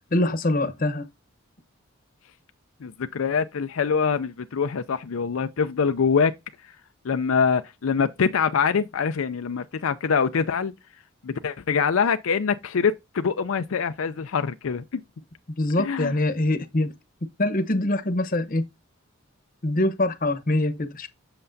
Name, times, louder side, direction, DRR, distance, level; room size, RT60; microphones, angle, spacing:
voice 1, 0.1-1.1 15.6-16.9 17.4-18.7 19.6-21.1, left 1 dB, 40° left, 0.9 m, -24 dB
voice 2, 2.8-6.3 7.0-10.7 11.2-15.0 15.8-16.1, left 6 dB, 75° left, 0.5 m, -24 dB
7.8 x 6.6 x 2.6 m
head